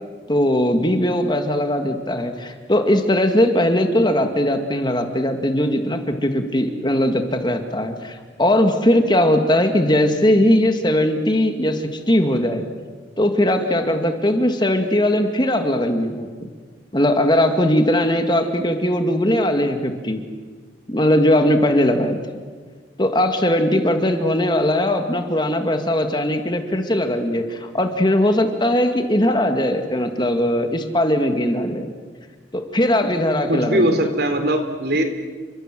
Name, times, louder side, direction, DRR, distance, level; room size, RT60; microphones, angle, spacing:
voice 1, 0.3-12.7 13.2-16.5 16.9-20.2 20.9-22.2 23.0-31.9 32.5-34.0, left 1 dB, 25° left, 6 dB, 2.2 m, -19 dB
voice 2, 33.5-35.0, right 1 dB, 55° right, 7 dB, 3.6 m, -20 dB
29.5 x 25.5 x 7.7 m, 1.5 s
head